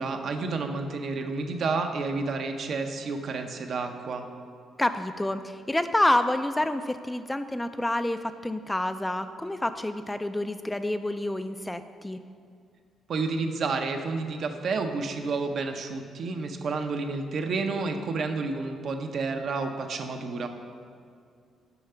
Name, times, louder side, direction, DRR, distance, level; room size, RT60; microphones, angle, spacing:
voice 1, 0.0-4.2 13.1-20.5, right 4 dB, 60° right, 5 dB, 0.6 m, -30 dB
voice 2, 4.8-12.2, left 1 dB, 10° left, 9 dB, 0.3 m, -28 dB
6.9 x 4.8 x 5.5 m, 2.3 s
cardioid pair, 90°, 0 cm